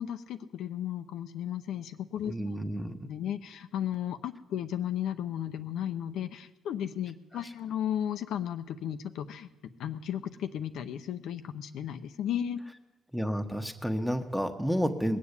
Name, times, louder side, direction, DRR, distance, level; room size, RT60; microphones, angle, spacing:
voice 1, 0.0-2.3 3.0-9.5 9.8-12.6, left 10 dB, 80° left, 9 dB, 0.8 m, -34 dB
voice 2, 2.2-3.0 7.3-7.5 13.1-15.2, equal, ahead, 6 dB, 1.4 m, -31 dB
20.0 x 7.5 x 8.3 m, 1.1 s
cardioid pair, 90°, 0 cm